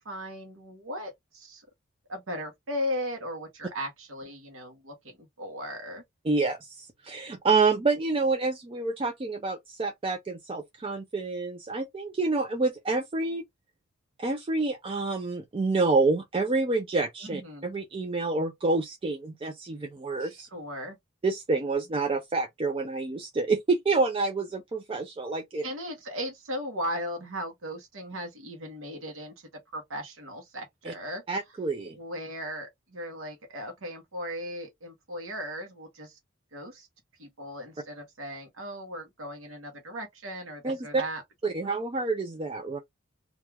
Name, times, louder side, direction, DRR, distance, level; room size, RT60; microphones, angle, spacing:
voice 1, 0.0-1.6 2.1-6.0 17.2-17.7 20.2-21.0 25.6-31.2 32.0-36.2 36.5-36.9 37.2-41.2 41.6-41.8, equal, 70° right, 0.9 m, -37 dB
voice 2, 6.3-13.4 14.2-20.5 21.2-25.6 30.8-30.9 31.3-32.0 40.6-41.0 41.4-42.8, right 3 dB, 25° right, 0.4 m, -28 dB
2.4 x 2.3 x 3.1 m
head